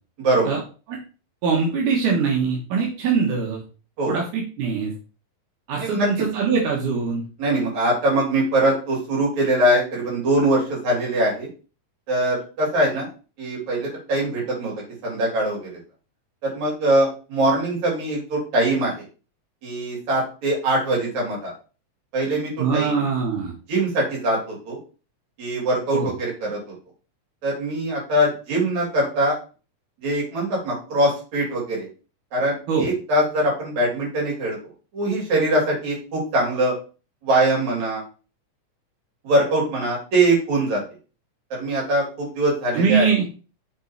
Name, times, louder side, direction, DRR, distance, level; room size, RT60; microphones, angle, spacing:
voice 1, 0.2-0.5 4.0-4.2 5.8-6.1 7.4-11.5 12.1-13.1 13.4-14.7 15.0-15.7 16.4-19.0 19.6-21.5 22.1-23.0 23.7-24.8 25.4-26.6 27.4-29.4 30.0-31.9 32.3-34.6 34.9-36.7 37.2-38.0 39.2-40.8 41.5-43.1, right 1 dB, 65° right, -3 dB, 4.6 m, -22 dB
voice 2, 1.4-3.6 4.1-4.9 5.7-7.2 22.6-23.5 25.9-26.1 32.7-32.9 42.7-43.3, right 5 dB, 90° right, -2 dB, 2.9 m, -22 dB
7.6 x 4.1 x 4.6 m, 0.35 s
omnidirectional pair, 3.5 m